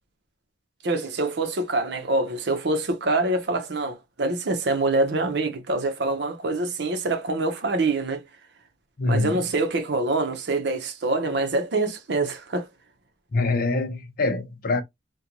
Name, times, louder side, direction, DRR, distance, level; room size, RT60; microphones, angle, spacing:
voice 1, 0.8-8.2 9.1-12.7, right 2 dB, 65° right, 0.7 m, -25 dB
voice 2, 9.0-9.4 13.3-14.8, left 3 dB, 50° left, 0.5 m, -24 dB
2.5 x 2.2 x 2.9 m
head